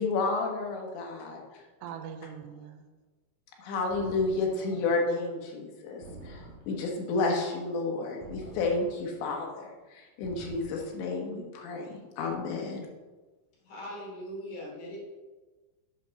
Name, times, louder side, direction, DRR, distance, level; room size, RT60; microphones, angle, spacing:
voice 1, 0.0-1.6 3.6-12.9, left 3 dB, 85° left, 1 dB, 3.6 m, -31 dB
voice 2, 1.8-2.9, right 8 dB, 85° right, 7 dB, 2.8 m, -42 dB
sound 1, 3.9-4.8 6.0-7.0 8.2-9.2 10.2-11.1, right 2 dB, 40° right, 3.8 m, -48 dB
voice 3, 13.7-15.0, equal, 55° left, -4 dB, 4.6 m, -40 dB
8.7 x 6.4 x 5.8 m, 1.3 s
omnidirectional pair, 5.0 m